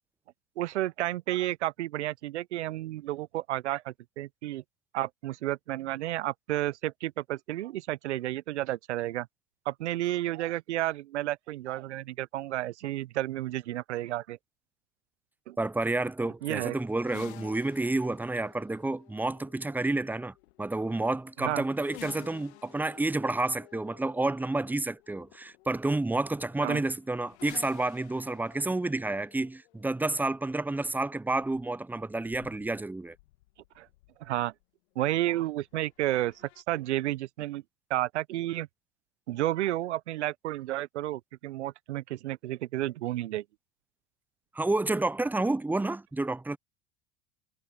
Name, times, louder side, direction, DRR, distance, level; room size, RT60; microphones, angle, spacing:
voice 1, 0.6-4.6 4.9-9.3 9.7-14.4 15.5-15.6 16.4-16.8 21.4-21.6 26.6-26.8 33.8-33.9 34.2-34.5 35.0-37.6 37.9-38.7 39.3-43.4, right 15 dB, 80° right, 0.8 m, -31 dB
voice 2, 15.6-33.2 44.5-46.6, right 2 dB, 5° right, 0.6 m, -30 dB
sound 1, 16.8-34.6 35.7-36.6, left 20 dB, 70° left, 1.8 m, -53 dB
hypercardioid pair, 80°, 34 cm